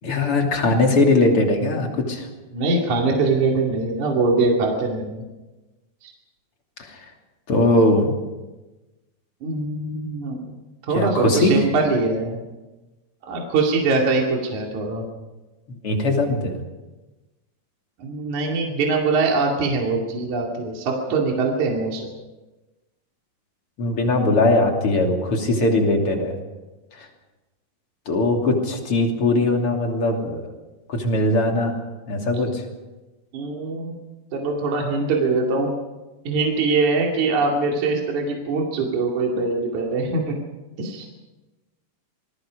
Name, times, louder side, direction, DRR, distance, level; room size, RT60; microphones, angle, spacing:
voice 1, 0.0-2.3 6.8-7.1 7.5-8.1 10.9-11.6 15.8-16.5 23.8-26.3 27.0-27.1 28.1-30.5 30.9-31.7 32.1-32.7, left 2 dB, 40° left, 2 dB, 3.5 m, -20 dB
voice 2, 2.5-5.2 6.0-6.1 9.4-10.4 10.9-12.4 13.3-15.0 18.0-22.1 33.3-34.0 34.3-35.7 36.3-40.4 40.8-41.1, right 3 dB, 60° right, 0 dB, 3.6 m, -22 dB
27.0 x 20.5 x 5.2 m, 1.1 s
omnidirectional pair, 4.1 m